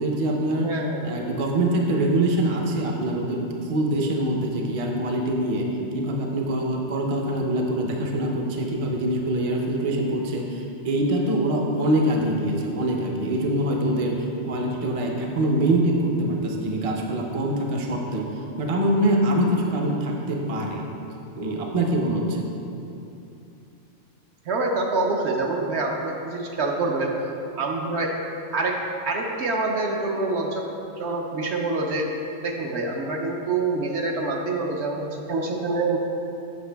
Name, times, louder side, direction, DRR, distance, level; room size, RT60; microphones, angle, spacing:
voice 1, 0.0-0.7 1.0-5.7 5.9-18.3 18.6-20.8 21.4-22.4, right 1 dB, 40° right, 1 dB, 0.6 m, -24 dB
voice 2, 0.6-1.1 24.5-27.2 27.6-28.1 28.5-28.8 29.0-30.7 31.0-32.1 32.4-36.0, right 3 dB, 65° right, 1 dB, 0.8 m, -26 dB
7.8 x 5.7 x 3.4 m, 2.8 s
omnidirectional pair, 1.3 m